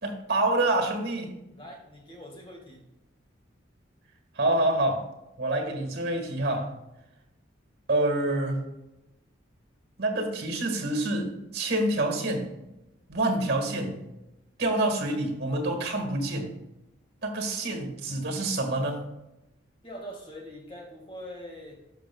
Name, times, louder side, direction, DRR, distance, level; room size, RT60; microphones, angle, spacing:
voice 1, 0.0-1.4 4.3-5.1 5.4-6.7 7.9-8.7 10.0-12.5 13.1-14.0 14.6-16.5 17.2-19.0, right 2 dB, 55° right, 4 dB, 1.7 m, -27 dB
voice 2, 1.5-2.8 19.8-21.8, equal, 30° left, 0 dB, 1.7 m, -43 dB
11.5 x 6.1 x 2.3 m, 0.93 s
head